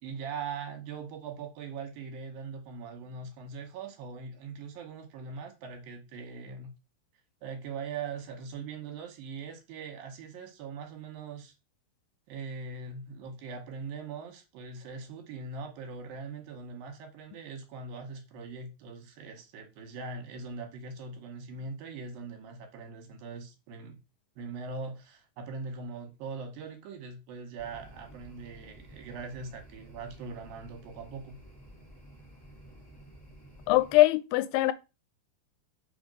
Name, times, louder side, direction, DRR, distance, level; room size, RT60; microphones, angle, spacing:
voice 1, 0.0-6.7 7.4-11.5 12.3-24.0 24.4-31.4, right 4 dB, 70° right, 2.7 m, -41 dB
sound 1, 27.6-34.0, right 1 dB, 15° left, 0.8 m, -52 dB
voice 2, 33.7-34.7, left 17 dB, 85° left, 2.5 m, -22 dB
5.6 x 4.2 x 5.2 m
omnidirectional pair, 4.6 m